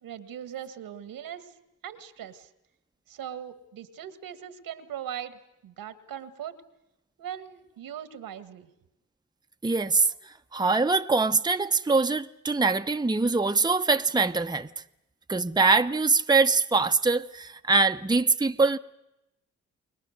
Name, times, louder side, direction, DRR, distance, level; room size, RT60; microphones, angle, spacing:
voice 1, 0.0-1.6 1.8-2.5 3.1-6.6 7.2-8.7, right 9 dB, 75° right, 1.7 m, -40 dB
voice 2, 9.6-14.7 15.3-18.8, right 3 dB, 10° right, 0.9 m, -23 dB
29.5 x 21.0 x 6.6 m
hypercardioid pair, 40°, 34 cm